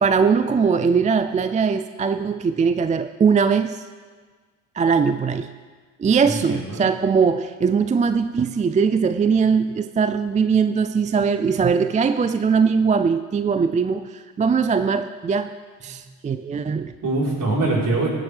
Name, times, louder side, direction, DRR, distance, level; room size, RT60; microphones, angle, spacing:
voice 1, 0.0-3.9 4.7-5.5 6.0-15.5 15.8-16.9, right 5 dB, 20° right, 10 dB, 0.4 m, -20 dB
voice 2, 6.2-6.8 15.8-16.0 17.0-18.1, right 2 dB, 50° right, -4 dB, 4.0 m, -23 dB
15.5 x 9.7 x 3.4 m, 1.5 s
supercardioid pair, 65°, 41 cm